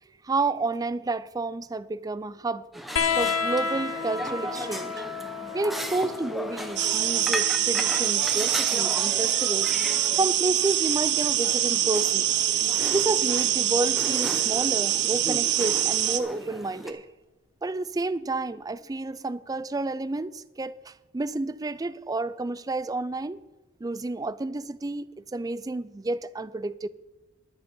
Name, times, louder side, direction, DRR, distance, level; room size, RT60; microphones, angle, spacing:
voice 1, 0.2-2.6 3.2-5.0 5.5-9.7 10.2-12.3 12.9-17.1 17.6-23.4 23.8-26.9, right 3 dB, 20° right, 0.4 m, -30 dB
sound 1, 2.7-16.9, equal, ahead, 0.8 m, -37 dB
sound 2, 3.0-10.0 11.4-12.2 13.5-13.6, left 5 dB, 75° left, 0.8 m, -33 dB
sound 3, 6.8-16.2, right 12 dB, 55° right, 0.7 m, -24 dB
11.0 x 10.0 x 5.5 m
head